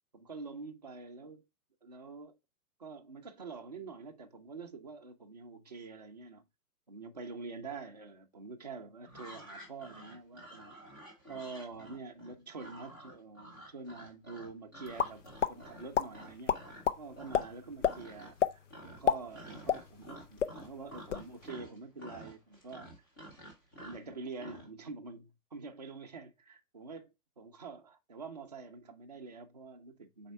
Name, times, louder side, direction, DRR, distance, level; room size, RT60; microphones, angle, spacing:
voice 1, 0.1-1.4 1.8-2.4 2.8-6.4 6.9-11.0 11.3-15.2 15.5-16.6 17.0-18.4 18.8-22.9 23.8-27.0 27.4-30.3, right 4 dB, 25° right, 0.5 m, -46 dB
sound 1, 9.0-16.9 17.1-17.6 17.8-18.4 18.7-24.7, right 1 dB, 15° left, 0.8 m, -50 dB
sound 2, 15.0-15.5 15.9-16.1 16.5-17.0 17.3-17.4 17.8-17.9 18.4-18.5 18.9-20.1 20.4-20.5 20.9-21.2, left 8 dB, 50° left, 0.5 m, -28 dB
4.5 x 4.2 x 5.2 m
hypercardioid pair, 170°, 47 cm